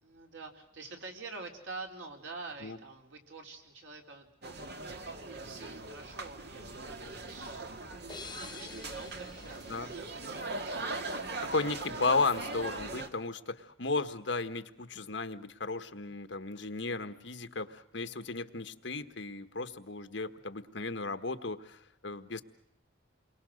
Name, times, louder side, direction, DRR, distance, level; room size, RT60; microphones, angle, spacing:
voice 1, 0.0-8.1 8.4-11.5 18.1-18.3, right 3 dB, 90° right, 2 dB, 4.2 m, -48 dB
sound 1, 4.4-13.1, right 2 dB, 60° right, 2.0 m, -40 dB
sound 2, 8.1-10.9, left 5 dB, 25° left, 1.1 m, -49 dB
voice 2, 11.4-22.4, left 3 dB, 70° left, 9 dB, 1.5 m, -34 dB
29.5 x 23.0 x 6.5 m, 0.77 s
head